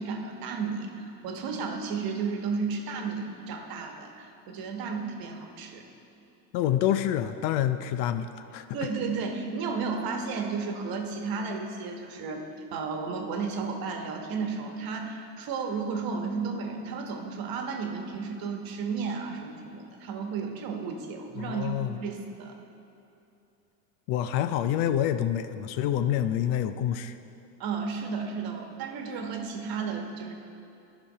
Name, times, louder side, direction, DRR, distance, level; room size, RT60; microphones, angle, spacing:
voice 1, 0.0-5.8 8.7-12.4 12.7-22.6 27.6-30.3, right 5 dB, 45° right, 4 dB, 1.3 m, -33 dB
voice 2, 6.5-8.7 21.4-22.0 24.1-27.2, left 10 dB, 55° left, 10 dB, 0.5 m, -27 dB
11.5 x 5.1 x 5.5 m, 2.7 s
supercardioid pair, 105°, 48 cm